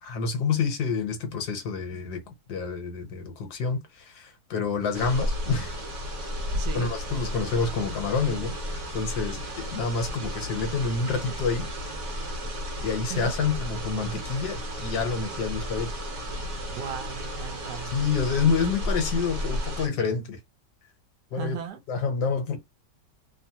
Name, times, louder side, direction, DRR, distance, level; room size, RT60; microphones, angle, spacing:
voice 1, 0.0-2.2 2.5-5.8 6.7-11.7 12.8-15.9 17.8-20.4 21.3-21.6 21.9-22.6, left 5 dB, 65° left, 1.4 m, -28 dB
sound 1, 4.9-19.9, equal, 50° right, 1.3 m, -33 dB
voice 2, 6.5-6.9 13.1-13.3 16.7-17.9 21.4-21.8, right 8 dB, 70° right, 1.2 m, -36 dB
3.2 x 2.0 x 2.8 m
omnidirectional pair, 1.9 m